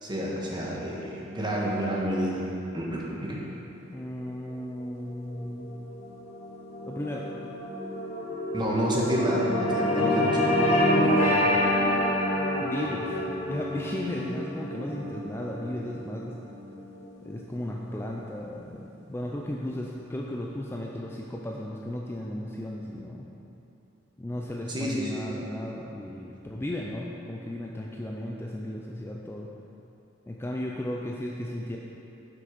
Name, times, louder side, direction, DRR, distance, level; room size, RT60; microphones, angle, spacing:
voice 1, 0.0-2.4 2.7-3.4 8.5-10.5 24.7-25.4, equal, 25° right, -4 dB, 1.3 m, -29 dB
voice 2, 3.8-5.7 6.9-7.3 9.9-11.7 12.6-13.2 13.5-16.4 17.2-23.3 24.2-29.5 30.3-31.8, left 1 dB, 10° left, -2 dB, 0.4 m, -35 dB
sound 1, 5.1-17.6, left 1 dB, 35° left, 1.8 m, -28 dB
7.7 x 6.1 x 5.2 m, 2.9 s
head